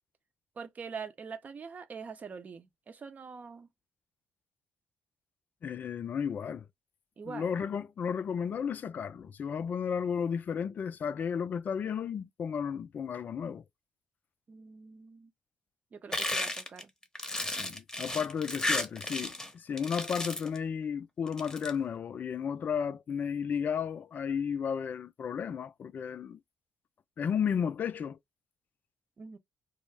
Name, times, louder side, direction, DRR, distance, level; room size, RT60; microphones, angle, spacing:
voice 1, 0.6-3.7 7.2-7.5 14.5-15.3 15.9-16.9 29.2-29.4, right 5 dB, 45° right, 0.6 m, -44 dB
voice 2, 5.6-6.7 7.3-13.6 17.4-26.4 27.2-28.2, left 7 dB, 50° left, 0.4 m, -33 dB
sound 1, 16.1-19.5 19.8-20.6 21.3-21.7, left 1 dB, 15° left, 0.8 m, -33 dB
2.3 x 2.0 x 3.1 m
hypercardioid pair, 50°, 4 cm